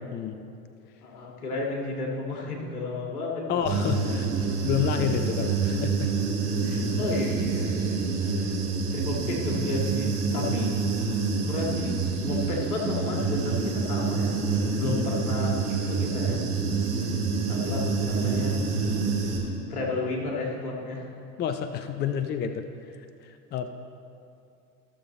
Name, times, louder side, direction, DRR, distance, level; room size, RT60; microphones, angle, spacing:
voice 1, 1.0-3.6 7.0-8.6 8.9-10.7 11.4-11.9 12.2-14.3 14.7-16.5 17.5-18.6 19.7-21.1, left 3 dB, 80° left, -2 dB, 2.0 m, -32 dB
voice 2, 3.5-6.1 6.6-6.9 10.3-10.5 14.8-15.1 21.4-22.6 23.2-23.7, left 8 dB, 25° left, 8 dB, 0.5 m, -30 dB
Human voice / Buzz, 3.6-19.4, right 4 dB, 65° right, 2.4 m, -27 dB
14.0 x 6.9 x 4.1 m, 2.5 s
figure-of-eight pair, 75°, 45 cm